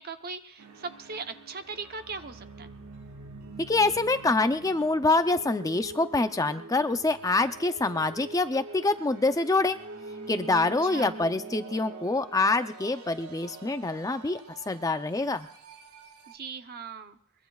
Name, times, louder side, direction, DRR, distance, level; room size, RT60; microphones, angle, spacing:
voice 1, 0.0-2.7 10.8-11.1 16.3-17.2, right 4 dB, 45° right, 9 dB, 0.8 m, -39 dB
sound 1, 0.6-16.3, right 3 dB, 80° right, 1.9 m, -45 dB
voice 2, 3.7-9.8 10.3-15.5, left 3 dB, 15° left, 9 dB, 0.5 m, -26 dB
22.5 x 22.0 x 2.4 m, 0.67 s
head